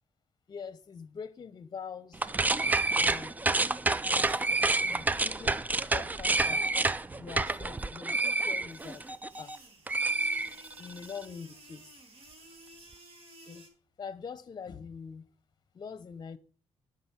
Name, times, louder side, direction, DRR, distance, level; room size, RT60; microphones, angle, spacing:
voice 1, 0.5-2.2 2.9-3.3 4.0-4.3 4.8-5.6 5.9-6.6 7.2-9.0 9.4-9.6 10.8-11.9 13.5-13.7 14.0-15.2 15.7-16.4, left 6 dB, 35° left, 0.8 m, -43 dB
sound 1, 2.1-9.6 9.9-11.0, right 3 dB, 15° right, 0.4 m, -28 dB
sound 2, 8.7-13.7, right 1 dB, 55° right, 2.6 m, -54 dB
10.0 x 5.2 x 6.8 m
cardioid pair, 135°, 12 cm